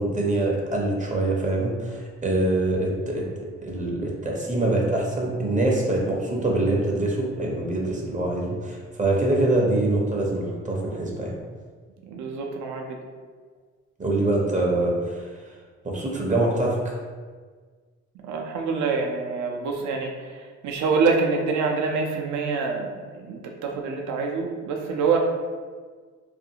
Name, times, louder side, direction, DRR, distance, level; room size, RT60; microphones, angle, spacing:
voice 1, 0.0-3.3 3.6-11.4 14.0-15.3 15.8-17.0, right 2 dB, 25° right, -2 dB, 0.6 m, -24 dB
voice 2, 12.0-13.0 18.2-25.2, right 4 dB, 70° right, 2 dB, 0.5 m, -26 dB
2.5 x 2.4 x 2.7 m, 1.5 s
cardioid pair, 90°, 30 cm